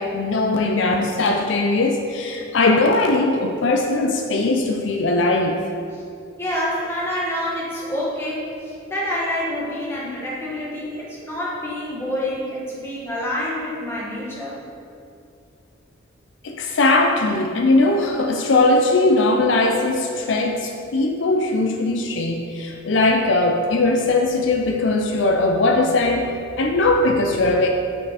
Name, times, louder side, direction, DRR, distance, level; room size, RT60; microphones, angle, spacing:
voice 1, 0.0-5.6 16.4-27.7, left 2 dB, 75° left, 2 dB, 0.5 m, -19 dB
voice 2, 6.4-14.6, left 1 dB, 15° left, -6 dB, 1.4 m, -27 dB
6.6 x 5.4 x 4.2 m, 2.5 s
head